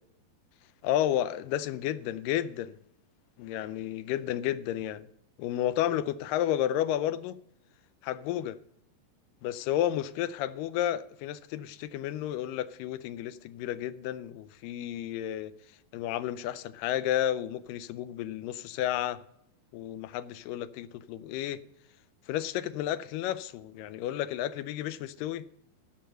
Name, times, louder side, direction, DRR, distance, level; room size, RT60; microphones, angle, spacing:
voice 1, 0.8-2.7 3.4-5.1 5.4-7.4 8.0-8.6 9.4-15.5 15.9-19.2 19.7-21.6 22.3-25.4, left 12 dB, 80° left, 2.1 m, -31 dB
14.0 x 5.7 x 6.6 m
omnidirectional pair, 4.1 m